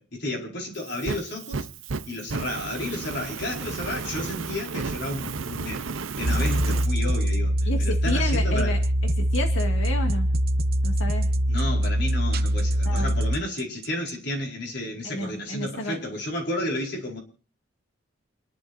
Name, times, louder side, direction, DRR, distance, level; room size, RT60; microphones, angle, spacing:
voice 1, 0.0-1.7 2.0-5.8 6.2-8.8 11.5-17.2, left 1 dB, 55° left, 4.8 m, -32 dB
Fire, 0.8-6.9, right 4 dB, 80° right, 0.7 m, -33 dB
sound 1, 6.2-14.1, equal, 50° right, 1.0 m, -23 dB
voice 2, 7.6-10.3 10.8-11.3 12.8-13.1 15.0-16.0, left 1 dB, 85° left, 2.1 m, -31 dB
28.5 x 11.5 x 2.6 m
head